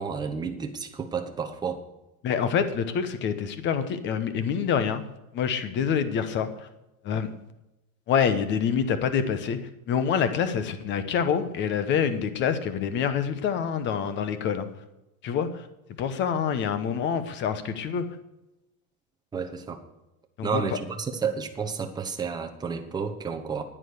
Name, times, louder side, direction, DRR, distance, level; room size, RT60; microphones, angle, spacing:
voice 1, 0.0-1.8 19.3-19.8 20.4-23.6, right 6 dB, 10° right, 4 dB, 1.0 m, -31 dB
voice 2, 2.2-5.0 5.3-6.5 7.0-7.3 8.1-9.6 9.9-14.7 15.2-15.6 16.0-18.0 20.4-20.6, left 7 dB, 25° left, 11 dB, 1.0 m, -26 dB
10.0 x 10.0 x 6.6 m, 0.95 s
supercardioid pair, 155°, 43 cm